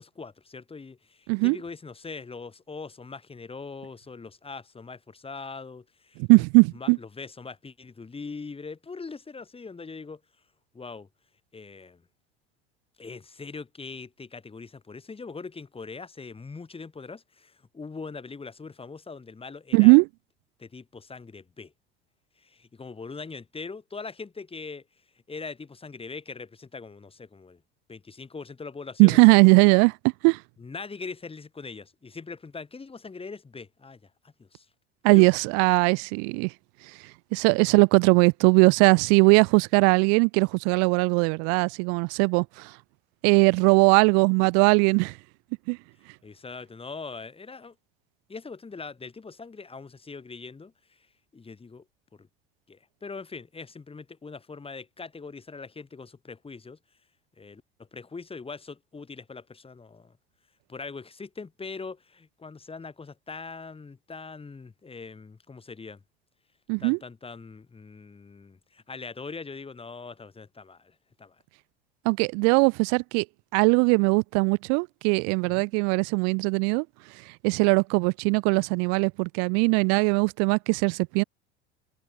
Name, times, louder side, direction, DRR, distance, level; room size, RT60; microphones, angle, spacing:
voice 1, 0.0-6.2 6.7-10.2 10.7-11.1 11.5-12.0 13.0-20.0 20.6-21.7 22.4-24.8 25.3-27.6 27.9-29.2 30.6-34.7 35.1-35.3 46.2-47.7 48.3-51.1 51.3-51.8 52.1-52.3 52.7-56.8 57.4-60.1 60.7-66.0 66.8-71.4 75.4-75.7, left 4 dB, 20° left, 3.1 m, -41 dB
voice 2, 6.2-7.0 19.7-20.1 29.0-30.0 30.2-30.4 35.0-36.5 37.3-42.7 43.2-45.2 45.7-45.8 66.7-67.0 72.1-73.3 73.5-76.9 77.4-81.2, right 40 dB or more, 55° right, 0.4 m, -20 dB
hypercardioid pair, 80°, 30 cm